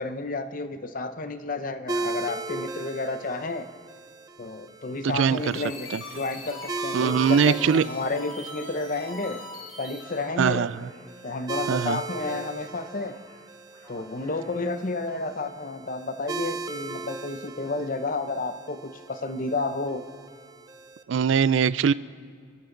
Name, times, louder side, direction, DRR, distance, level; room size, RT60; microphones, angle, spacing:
voice 1, 0.0-3.7 4.4-9.4 9.8-10.7 11.2-13.2 13.9-20.0, left 3 dB, 45° left, 9 dB, 0.8 m, -31 dB
sound 1, 1.9-21.0, right 3 dB, 20° right, 0.5 m, -38 dB
voice 2, 5.0-5.6 5.9-6.0 6.9-7.8 10.4-10.9 11.7-12.0 21.1-21.9, right 7 dB, 70° right, 18 dB, 0.4 m, -22 dB
sound 2, 5.2-10.3, left 2 dB, 75° left, 3.1 m, -40 dB
Speech, 9.9-15.2, left 1 dB, 20° left, 3.8 m, -54 dB
28.0 x 12.0 x 3.9 m, 2.1 s
head